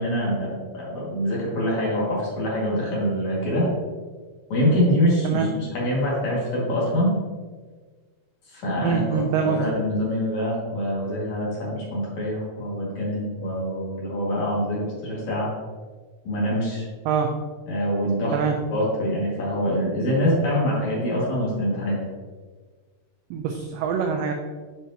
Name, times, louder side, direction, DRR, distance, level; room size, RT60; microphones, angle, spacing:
voice 1, 0.0-3.7 4.5-7.1 8.5-15.5 16.2-16.9 17.7-18.4 18.7-22.0, equal, 50° left, -6 dB, 3.1 m, -25 dB
voice 2, 8.8-9.7 17.1-17.3 18.3-18.6 23.3-24.3, right 6 dB, 85° right, 4 dB, 1.9 m, -24 dB
10.0 x 5.1 x 2.9 m, 1.4 s
omnidirectional pair, 4.5 m